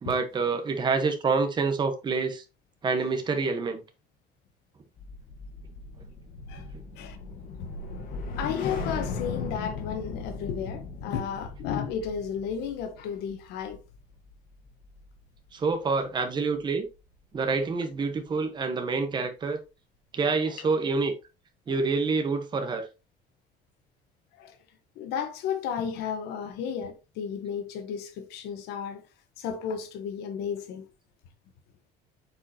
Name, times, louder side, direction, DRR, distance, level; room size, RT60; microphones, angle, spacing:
voice 1, 0.0-2.4 2.8-3.8 15.5-16.9 17.3-19.6 20.1-21.1 21.7-22.9, right 4 dB, 25° right, 1.3 m, -27 dB
sound 1, 5.0-15.4 15.7-16.0, left 4 dB, 60° left, 1.5 m, -38 dB
voice 2, 8.4-13.8 21.7-21.9 24.4-24.6 25.0-29.0 29.4-30.9, left 7 dB, 90° left, 1.3 m, -33 dB
8.2 x 4.8 x 2.9 m
cardioid pair, 150°, 16 cm